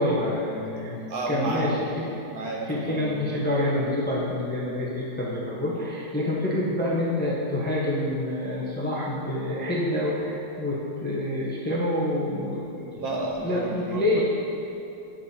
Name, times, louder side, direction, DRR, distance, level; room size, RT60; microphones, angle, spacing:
voice 1, 0.0-1.0 1.3-2.1 2.6-13.0 13.4-14.2, left 1 dB, 10° left, -6 dB, 0.7 m, -27 dB
voice 2, 1.1-1.7 2.3-3.2 13.0-14.2, right 2 dB, 65° right, -2 dB, 1.5 m, -31 dB
9.6 x 7.5 x 2.8 m, 2.8 s
omnidirectional pair, 1.8 m